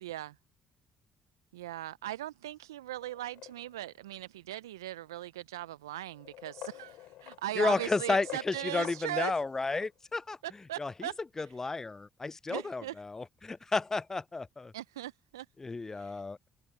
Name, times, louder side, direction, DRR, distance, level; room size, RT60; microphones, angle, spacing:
voice 1, 0.0-0.3 1.5-9.3 10.4-11.1 12.5-12.9 14.7-15.5 15.9-16.2, right 14 dB, 85° right, 0.4 m, -39 dB
sound 1, 3.0-4.0 5.0-5.1 6.1-9.9, left 15 dB, 70° left, 4.7 m, -48 dB
voice 2, 7.6-10.4 10.8-14.7 15.6-16.5, left 3 dB, 25° left, 0.4 m, -32 dB
hypercardioid pair, 50°, 2 cm